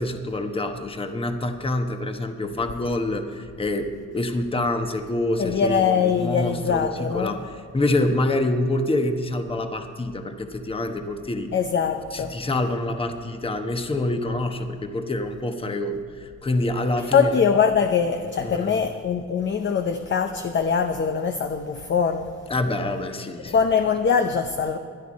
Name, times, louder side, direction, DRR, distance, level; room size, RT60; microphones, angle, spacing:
voice 1, 0.0-7.4 7.7-11.5 12.1-17.4 18.4-18.8 22.5-23.6, left 2 dB, 20° left, 1.1 m, -26 dB
voice 2, 5.4-7.3 11.5-12.4 17.0-22.3 23.4-24.8, left 6 dB, 40° left, 0.7 m, -22 dB
17.0 x 11.0 x 4.2 m
cardioid pair, 90°, 30 cm